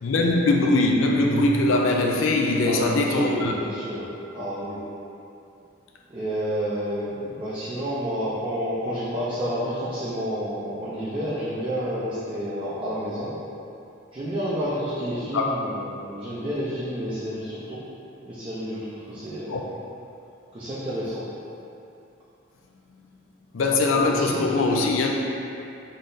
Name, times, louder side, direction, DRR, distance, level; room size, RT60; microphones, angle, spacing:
voice 1, 0.0-3.5 15.3-15.5 19.5-19.6 23.5-25.1, left 2 dB, 80° left, 0 dB, 0.4 m, -21 dB
voice 2, 2.6-4.1 4.3-4.8 6.1-13.3 14.1-17.8 18.2-19.6 20.5-21.2 24.0-25.1, equal, 25° right, -10 dB, 0.6 m, -30 dB
3.9 x 3.2 x 3.9 m, 2.7 s
head